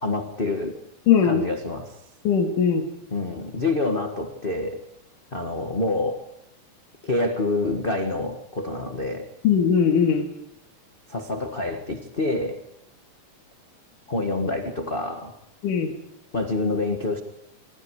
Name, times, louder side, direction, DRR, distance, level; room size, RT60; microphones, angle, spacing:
voice 1, 0.0-0.8 1.2-1.9 3.1-4.8 5.3-6.2 7.0-9.3 11.1-12.6 14.1-15.4 16.3-17.2, left 2 dB, 25° left, 3 dB, 1.3 m, -27 dB
voice 2, 1.1-1.4 2.2-2.8 9.4-10.2 15.6-15.9, left 7 dB, 85° left, 3 dB, 3.5 m, -19 dB
26.5 x 26.0 x 4.9 m, 0.80 s
omnidirectional pair, 3.6 m